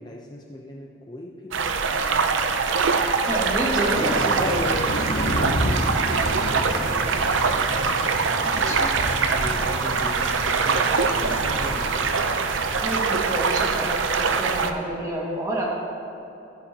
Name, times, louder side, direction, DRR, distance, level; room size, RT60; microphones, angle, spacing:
voice 1, 0.0-2.5 4.3-5.9 6.3-7.8 8.6-10.9 11.6-12.4, left 1 dB, 20° left, -1 dB, 0.6 m, -38 dB
sound 1, 1.5-14.7, right 5 dB, 85° right, 0.6 m, -23 dB
voice 2, 3.3-4.5 8.6-9.1 12.8-15.6, right 1 dB, 20° right, -3 dB, 1.8 m, -28 dB
Thunder, 3.9-13.0, left 1 dB, 85° left, 1.0 m, -31 dB
14.5 x 9.8 x 2.9 m, 2.8 s
head